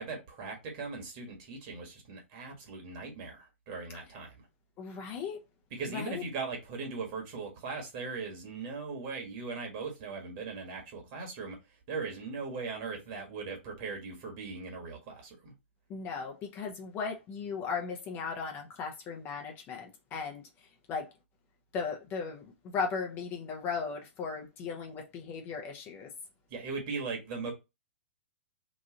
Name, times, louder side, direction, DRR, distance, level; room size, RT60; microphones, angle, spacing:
voice 1, 0.0-4.4 5.7-11.6 11.9-15.5 26.5-27.5, right 4 dB, 45° right, 1.4 m, -39 dB
voice 2, 4.8-5.4 5.9-6.2 15.9-21.1 21.7-26.1, left 5 dB, 30° left, 0.8 m, -37 dB
3.1 x 2.5 x 3.8 m
hypercardioid pair, 125°, 7 cm